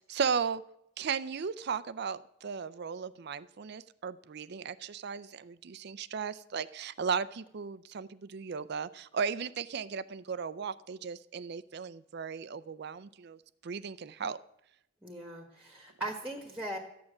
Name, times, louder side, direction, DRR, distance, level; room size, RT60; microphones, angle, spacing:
voice 1, 0.1-0.6 1.0-13.4 13.6-14.4, right 6 dB, 55° right, 16 dB, 0.4 m, -36 dB
voice 2, 15.0-16.8, right 1 dB, 5° right, 3 dB, 1.4 m, -39 dB
13.5 x 8.9 x 7.1 m, 0.77 s
head